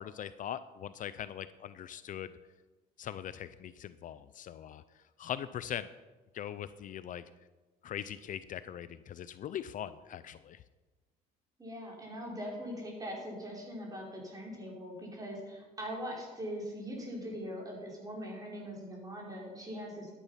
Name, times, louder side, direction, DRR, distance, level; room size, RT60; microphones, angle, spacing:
voice 1, 0.0-2.3 3.0-5.9 6.3-7.2 7.8-10.6, left 10 dB, 50° left, 14 dB, 0.5 m, -41 dB
voice 2, 11.6-20.1, equal, 20° right, -2 dB, 4.9 m, -41 dB
12.5 x 10.0 x 5.7 m, 1.2 s
cardioid pair, 110°, 17 cm